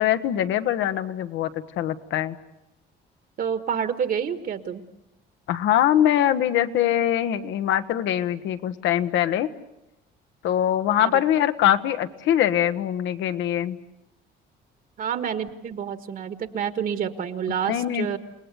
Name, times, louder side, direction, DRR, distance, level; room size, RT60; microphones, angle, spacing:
voice 1, 0.0-1.5 1.8-2.4 5.5-9.5 10.4-13.8 17.7-18.2, left 11 dB, 75° left, 10 dB, 1.3 m, -23 dB
voice 2, 3.4-4.8 11.0-11.2 15.0-18.2, right 8 dB, 50° right, 10 dB, 1.6 m, -28 dB
29.5 x 19.0 x 8.2 m, 0.87 s
cardioid pair, 150°, 20 cm